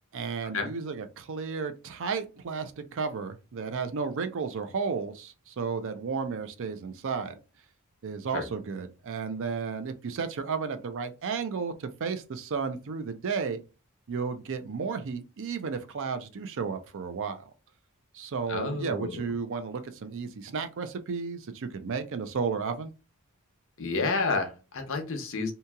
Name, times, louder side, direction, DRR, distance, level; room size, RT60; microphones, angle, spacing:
voice 1, 0.1-7.4 8.0-13.6 14.1-17.5 18.1-22.9, right 5 dB, 60° right, 0.4 m, -33 dB
voice 2, 18.5-19.2 23.8-25.5, left 3 dB, 60° left, 0.7 m, -30 dB
2.8 x 2.7 x 2.3 m
head